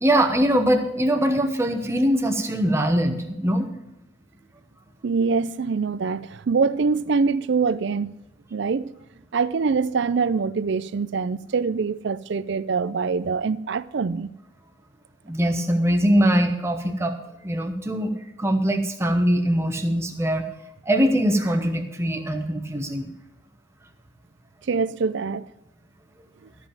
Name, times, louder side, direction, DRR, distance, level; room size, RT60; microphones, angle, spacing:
voice 1, 0.0-3.7 15.2-17.2 17.4-20.4 20.8-23.1, equal, 15° right, 1.0 m, -22 dB
voice 2, 5.0-8.1 8.5-8.9 9.3-14.3 24.7-25.5, right 5 dB, 60° right, 0.4 m, -24 dB
13.5 x 5.5 x 7.3 m
head